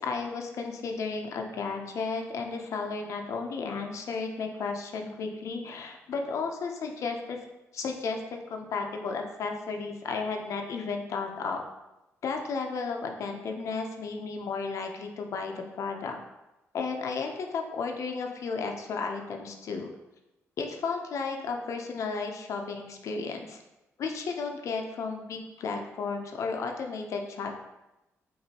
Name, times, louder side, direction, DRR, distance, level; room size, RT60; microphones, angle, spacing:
voice 1, 0.0-7.4 7.7-11.6 12.2-16.2 16.7-19.9 20.6-23.6 24.0-27.6, left 4 dB, 70° left, 3 dB, 0.6 m, -33 dB
5.9 x 2.6 x 2.9 m, 0.97 s
cardioid pair, 85°, 6 cm